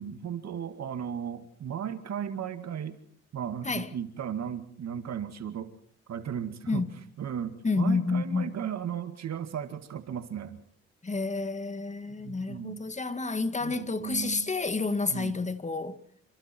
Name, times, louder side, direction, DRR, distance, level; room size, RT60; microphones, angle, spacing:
voice 1, 0.0-3.0 3.3-5.7 6.1-6.9 7.2-10.6 12.2-12.8 13.6-14.5 15.1-15.3, right 8 dB, 60° right, 2.1 m, -35 dB
voice 2, 7.6-8.6 11.0-16.0, left 3 dB, 25° left, 2.0 m, -29 dB
29.0 x 25.0 x 4.5 m
cardioid pair, 90°, 30 cm